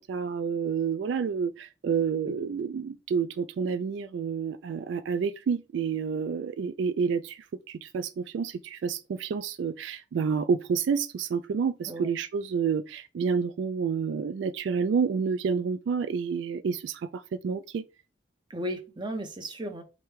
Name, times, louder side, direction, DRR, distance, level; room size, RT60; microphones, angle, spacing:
voice 1, 0.0-17.8, right 6 dB, 75° right, 0.3 m, -29 dB
voice 2, 18.5-19.8, right 1 dB, 25° right, 0.7 m, -35 dB
5.0 x 2.2 x 4.5 m
head